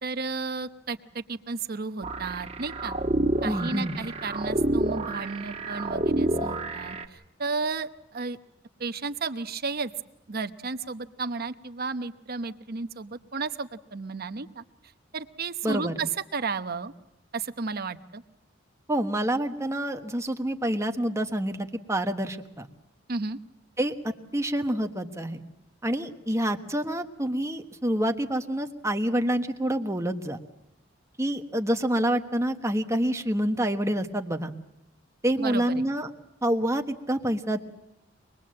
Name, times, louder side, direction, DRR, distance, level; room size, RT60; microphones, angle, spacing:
voice 1, 0.0-2.9 3.4-8.4 8.8-9.9 10.3-14.6 15.1-16.9 17.3-18.2 23.1-23.4 35.4-35.8, right 4 dB, 55° right, 10 dB, 0.9 m, -33 dB
sound 1, 2.0-7.0, right 1 dB, 35° right, 1.4 m, -29 dB
voice 2, 3.4-4.0 15.6-16.0 18.9-22.7 23.8-25.4 25.8-30.4 31.2-34.5 35.2-36.1 36.4-37.6, right 1 dB, 15° right, 5 dB, 1.2 m, -27 dB
24.5 x 20.5 x 7.6 m, 0.84 s
head